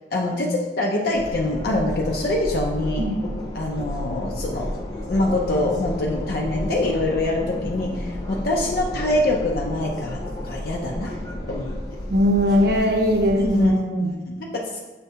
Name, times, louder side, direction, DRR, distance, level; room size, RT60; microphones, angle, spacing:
voice 1, 0.1-3.1 3.6-4.7 5.1-10.2 10.4-11.1 11.5-11.7 13.4-13.7 14.0-14.1 14.4-14.8, left 2 dB, 55° left, -1 dB, 0.4 m, -24 dB
sound 1, 1.1-13.7, left 1 dB, 20° left, 0.7 m, -32 dB
voice 2, 12.1-14.2, equal, 60° right, 2 dB, 0.6 m, -20 dB
6.3 x 2.2 x 2.8 m, 1.2 s
head